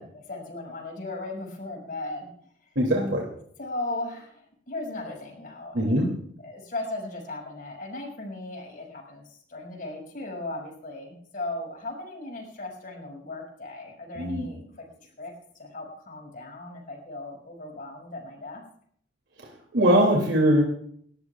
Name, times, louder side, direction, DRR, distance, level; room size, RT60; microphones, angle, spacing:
voice 1, 0.0-2.3 2.6-2.7 3.6-6.0 6.4-18.6, left 2 dB, 50° left, 0 dB, 5.9 m, -37 dB
voice 2, 2.8-3.2 5.7-6.1 14.1-14.5 19.7-20.6, equal, 90° right, -1 dB, 2.7 m, -21 dB
29.5 x 13.5 x 2.4 m, 0.63 s
head